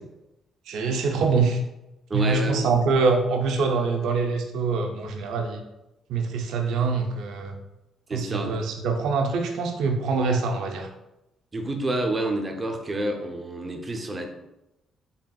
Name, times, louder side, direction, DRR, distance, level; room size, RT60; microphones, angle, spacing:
voice 1, 0.7-1.6 2.1-5.6 6.1-7.6 8.1-10.9, right 4 dB, 80° right, 3 dB, 0.5 m, -24 dB
voice 2, 2.1-2.7 8.1-8.6 11.5-14.3, right 2 dB, 30° right, 4 dB, 0.6 m, -28 dB
4.1 x 3.5 x 2.3 m, 0.92 s
cardioid pair, 90°, 0 cm